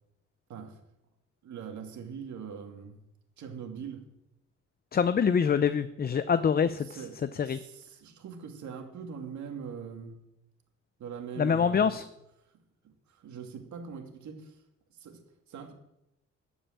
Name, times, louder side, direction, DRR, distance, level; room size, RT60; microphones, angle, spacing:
voice 1, 1.4-3.0 3.4-4.0 6.9-10.2 11.0-11.9 12.8-14.6 14.9-15.2 15.5-15.7, right 7 dB, 70° right, 4 dB, 2.3 m, -42 dB
voice 2, 4.9-7.0 7.3-7.6 11.4-12.0, left 6 dB, 30° left, 13 dB, 0.6 m, -25 dB
13.0 x 5.5 x 8.7 m, 0.85 s
cardioid pair, 90°, 30 cm